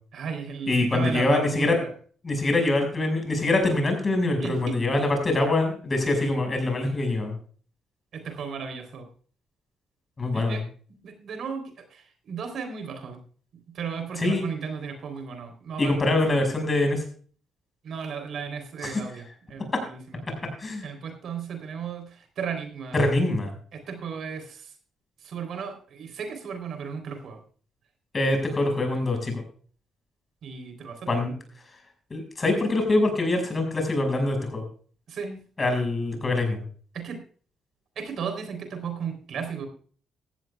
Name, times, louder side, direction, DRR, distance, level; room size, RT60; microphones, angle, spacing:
voice 1, 0.1-1.9 4.4-4.8 8.1-9.0 10.3-10.6 11.0-13.2 13.7-16.4 17.8-20.2 20.8-23.0 23.7-24.7 25.2-27.4 30.4-31.1 35.1-35.4 36.9-37.2 38.0-39.7, right 6 dB, 65° right, 6 dB, 3.7 m, -35 dB
voice 2, 0.7-1.8 2.2-7.4 10.2-10.6 14.2-14.5 15.8-17.0 18.8-19.0 20.6-20.9 22.9-23.5 28.1-29.4 31.1-31.3 32.1-34.7 35.6-36.6, left 2 dB, 30° left, 4 dB, 5.8 m, -24 dB
16.5 x 14.0 x 2.4 m, 0.43 s
cardioid pair, 90°, 0 cm